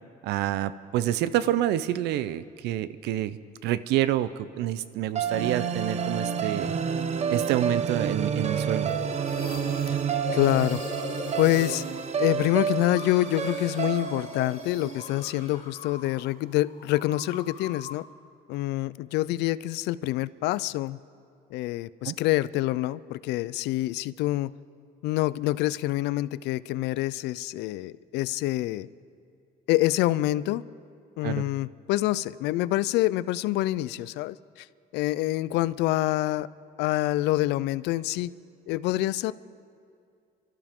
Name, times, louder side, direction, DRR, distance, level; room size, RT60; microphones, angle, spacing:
voice 1, 0.2-6.7 7.3-9.0 22.0-22.2 31.2-31.4, right 13 dB, 85° right, 15 dB, 0.6 m, -28 dB
sound 1, 5.1-15.4, right 7 dB, 40° right, 0.9 m, -29 dB
sound 2, 8.9-16.3 16.5-18.1, left 4 dB, 40° left, 4.6 m, -40 dB
voice 2, 10.3-10.8 11.4-11.8 12.2-18.1 18.5-21.0 21.5-24.5 25.0-28.9 29.7-30.6 31.2-34.7 34.9-36.5 36.8-38.3 38.7-39.3, left 16 dB, 85° left, 18 dB, 0.4 m, -26 dB
30.0 x 13.0 x 3.7 m, 2.3 s
cardioid pair, 110°, 17 cm